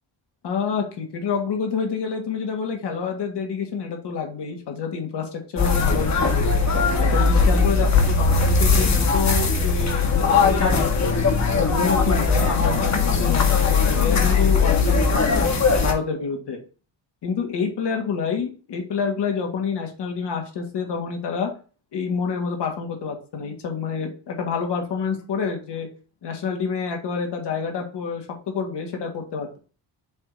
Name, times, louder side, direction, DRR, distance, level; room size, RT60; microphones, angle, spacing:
voice 1, 0.4-6.5 7.0-11.2 11.5-15.5 15.8-16.6 17.2-21.5 21.9-25.9 26.2-28.3 28.5-29.5, left 5 dB, 65° left, 3 dB, 1.7 m, -28 dB
sound 1, 5.6-15.9, left 4 dB, 40° left, 1.3 m, -19 dB
7.3 x 2.7 x 4.8 m, 0.36 s
wide cardioid pair, 150°, 44 cm